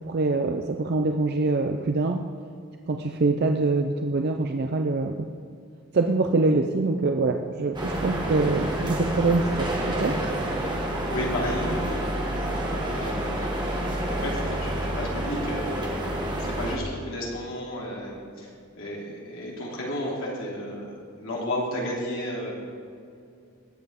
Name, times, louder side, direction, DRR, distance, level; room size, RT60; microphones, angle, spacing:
voice 1, 0.0-2.2 2.9-5.3 5.9-9.7 10.0-10.2, right 3 dB, 50° right, 4 dB, 0.5 m, -24 dB
sound 1, 7.7-16.8, right 1 dB, 20° right, 1.5 m, -28 dB
voice 2, 11.1-12.1 12.9-13.6 14.1-15.9 16.4-18.5 18.8-22.5, left 1 dB, 75° left, -4 dB, 3.1 m, -32 dB
19.0 x 7.9 x 3.6 m, 2.4 s
head